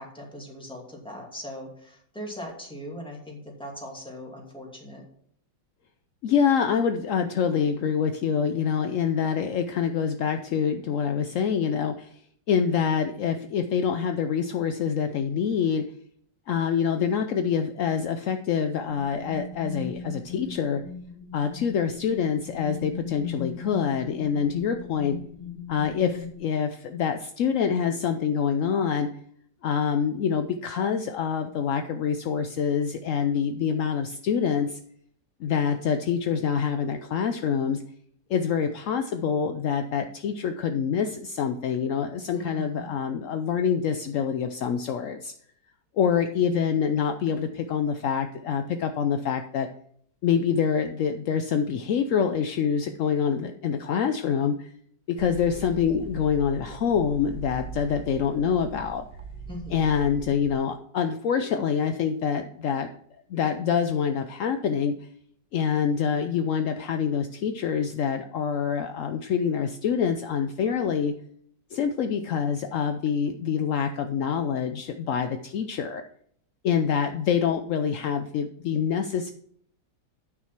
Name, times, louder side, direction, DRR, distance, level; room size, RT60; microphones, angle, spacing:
voice 1, 0.0-5.0 42.3-42.9 46.5-46.6 59.5-59.9, equal, 5° left, -2 dB, 2.3 m, -40 dB
voice 2, 6.2-12.1 12.5-15.8 16.5-20.8 21.3-25.2 25.7-29.1 29.6-34.8 35.4-37.8 38.3-45.3 46.0-49.7 50.2-54.7 55.2-59.0 59.7-62.9 63.3-64.9 65.5-71.1 71.7-76.0 76.6-79.3, left 7 dB, 70° left, 7 dB, 0.7 m, -26 dB
sound 1, 18.8-26.3, left 6 dB, 30° left, 1.8 m, -39 dB
sound 2, 55.2-60.5, right 5 dB, 70° right, 1.7 m, -41 dB
9.6 x 6.1 x 5.8 m, 0.64 s
omnidirectional pair, 2.0 m